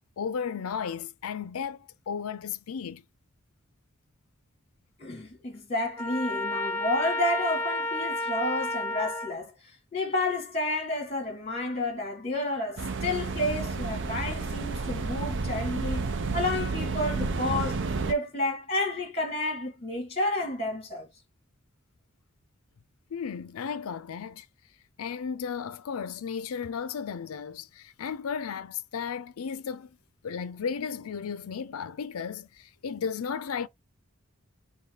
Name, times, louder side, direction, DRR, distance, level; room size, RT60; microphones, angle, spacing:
voice 1, 0.2-3.0 23.1-24.5 25.0-29.9 30.2-33.7, left 6 dB, 85° left, 0.4 m, -34 dB
voice 2, 5.0-9.5 9.9-21.1, left 2 dB, 30° left, 1.7 m, -30 dB
Trumpet, 6.0-9.3, left 1 dB, 10° left, 1.0 m, -31 dB
sound 1, 12.8-18.1, right 4 dB, 55° right, 0.5 m, -31 dB
4.0 x 2.7 x 3.7 m
head